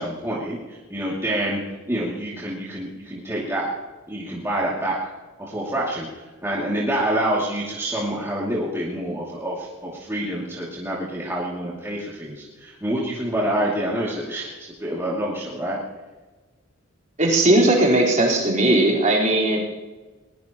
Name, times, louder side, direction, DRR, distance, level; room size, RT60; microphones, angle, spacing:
voice 1, 0.0-1.6 1.9-3.6 4.1-5.0 5.4-15.8, right 1 dB, 10° right, -6 dB, 2.6 m, -27 dB
voice 2, 17.2-19.6, right 1 dB, 35° right, -3 dB, 4.4 m, -18 dB
21.5 x 20.5 x 3.0 m, 1.2 s
head